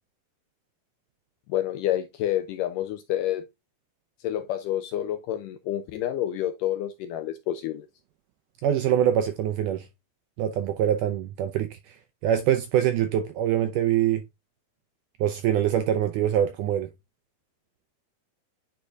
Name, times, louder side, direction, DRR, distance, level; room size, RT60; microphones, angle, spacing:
voice 1, 1.5-3.5 4.2-7.9, left 12 dB, 80° left, 2.0 m, -28 dB
voice 2, 8.6-9.9 10.4-12.0 12.2-14.2 15.2-16.9, right 10 dB, 80° right, 1.9 m, -24 dB
9.9 x 4.5 x 2.3 m
omnidirectional pair, 4.4 m